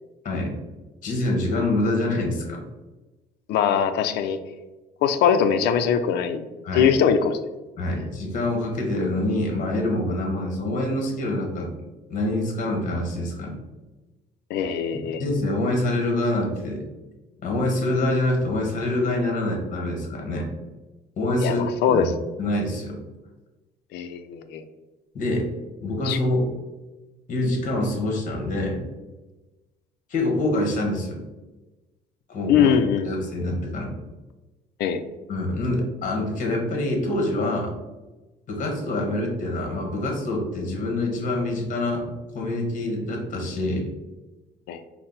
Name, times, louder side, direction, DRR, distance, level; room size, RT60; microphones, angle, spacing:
voice 1, 0.2-0.6 1.0-2.6 6.6-6.9 7.8-11.7 12.1-13.6 14.9-16.8 17.4-20.5 21.2-22.1 22.4-23.0 25.1-25.5 25.8-26.5 27.3-28.8 30.1-31.2 32.3-32.7 33.0-33.9 35.3-37.7 38.5-42.0 42.3-43.9, left 1 dB, 50° left, 1 dB, 1.2 m, -25 dB
voice 2, 3.5-4.4 5.0-6.4 6.7-7.4 14.5-15.2 21.4-22.1 23.9-24.6 26.1-26.2 32.5-33.2 34.8-35.0 44.7-44.8, left 7 dB, 75° left, 9 dB, 0.4 m, -21 dB
4.1 x 2.0 x 3.9 m, 1.1 s
cardioid pair, 110°, 17 cm